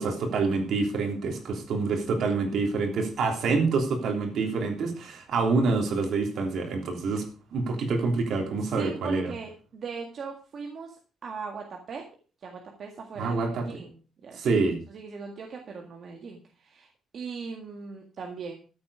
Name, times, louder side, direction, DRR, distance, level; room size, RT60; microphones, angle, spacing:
voice 1, 0.0-7.2 7.5-9.3 13.2-13.7 14.4-14.8, right 4 dB, 60° right, 3 dB, 3.2 m, -26 dB
voice 2, 8.6-12.0 12.4-14.6 14.9-18.5, right 5 dB, 40° right, 2 dB, 1.8 m, -39 dB
13.5 x 8.6 x 4.9 m, 0.37 s
cardioid pair, 170°, 0 cm